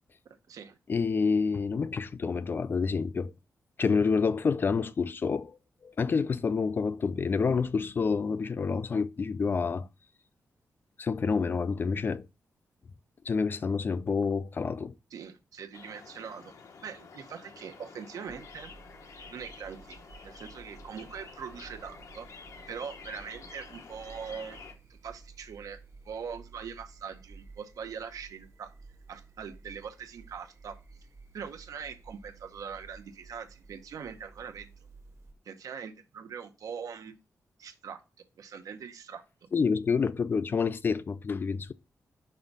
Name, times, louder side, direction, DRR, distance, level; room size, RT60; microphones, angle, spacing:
voice 1, 0.2-0.8 15.1-16.5 16.8-18.7 19.3-20.0 20.2-22.3 22.7-24.6 24.9-25.8 26.0-28.7 29.1-30.8 31.3-34.7 35.4-37.1 37.6-38.0 38.4-39.5, right 7 dB, 80° right, 0.8 m, -42 dB
voice 2, 0.9-3.3 3.8-5.6 5.8-9.9 11.0-12.3 13.3-14.9 39.5-41.7, left 5 dB, 35° left, 0.3 m, -28 dB
sound 1, 15.7-24.7, left 4 dB, 60° left, 1.0 m, -50 dB
sound 2, 18.3-35.3, right 4 dB, 55° right, 1.0 m, -53 dB
5.5 x 3.5 x 5.3 m
wide cardioid pair, 150°, 6 cm